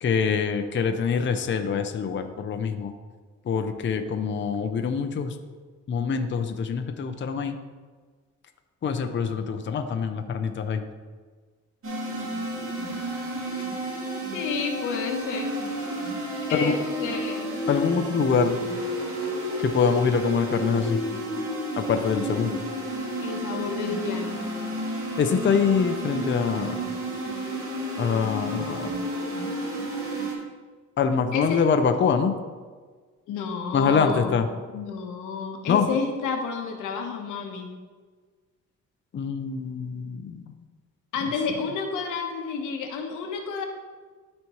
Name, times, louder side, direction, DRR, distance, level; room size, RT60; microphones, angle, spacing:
voice 1, 0.0-2.9 3.4-5.4 5.9-7.6 8.8-10.8 16.5-16.7 17.7-18.6 19.6-21.0 21.8-22.5 25.2-26.8 28.0-28.9 31.0-32.3 33.7-34.5 35.7-35.9 39.1-40.5, left 6 dB, 40° left, 6 dB, 0.6 m, -24 dB
sound 1, 11.8-30.3, equal, 45° right, 2.3 m, -31 dB
voice 2, 14.3-15.5 16.5-17.5 23.2-24.4 31.3-31.6 33.3-34.4 34.7-37.7 41.1-43.6, left 5 dB, 90° left, 3 dB, 1.1 m, -30 dB
13.0 x 4.3 x 3.1 m, 1.5 s
cardioid pair, 90°, 30 cm